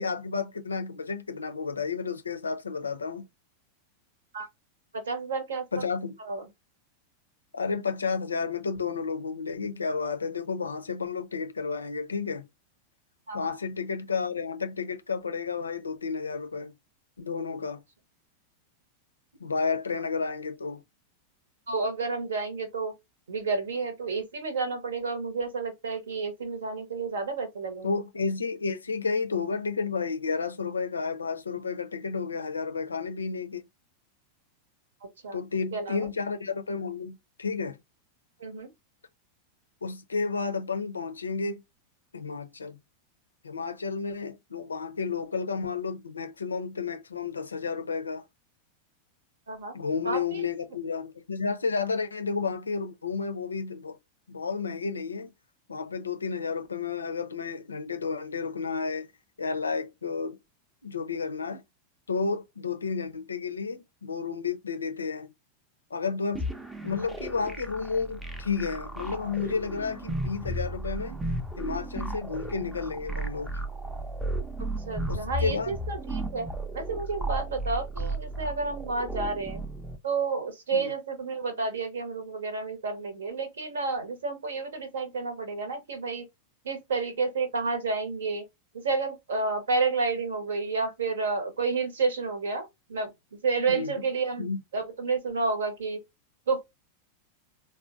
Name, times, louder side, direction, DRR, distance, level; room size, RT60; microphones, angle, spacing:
voice 1, 0.0-3.3 5.7-6.1 7.5-12.5 13.3-16.7 17.2-17.8 19.4-20.8 27.8-33.7 35.3-37.8 39.8-41.6 42.1-42.8 43.4-48.2 49.7-54.0 54.3-55.3 55.7-59.1 59.4-60.4 60.8-61.6 62.1-65.3 65.9-66.5 66.8-71.2 71.6-73.5 75.1-75.8 80.7-80.9 93.7-93.9 94.4-94.6, left 5 dB, 75° left, 0.5 m, -31 dB
voice 2, 4.9-5.8 6.2-6.4 13.3-13.5 21.7-22.9 23.3-27.9 35.2-35.4 35.7-36.1 38.4-38.7 49.5-49.7 50.0-50.5 74.9-76.5 76.7-79.6 80.0-86.3 86.6-88.4 88.7-93.1 93.4-94.5 94.7-96.0 96.5-96.6, right 4 dB, 65° right, 0.8 m, -30 dB
sound 1, 66.4-80.0, right 2 dB, 5° right, 0.5 m, -34 dB
3.8 x 2.1 x 2.4 m
figure-of-eight pair, 90°, 0 cm